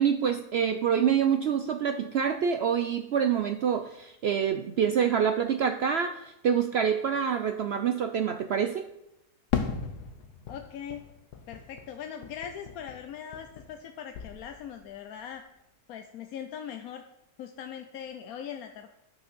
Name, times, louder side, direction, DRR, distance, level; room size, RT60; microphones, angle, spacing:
voice 1, 0.0-8.8, right 7 dB, 80° right, 7 dB, 0.5 m, -26 dB
Fireworks, 9.5-13.9 14.1-14.9, left 7 dB, 90° left, 1.5 m, -37 dB
voice 2, 10.5-11.0 11.5-15.4 15.9-17.0 17.4-18.9, left 8 dB, 70° left, 6 dB, 1.1 m, -40 dB
9.8 x 6.0 x 6.1 m, 0.87 s
omnidirectional pair, 1.7 m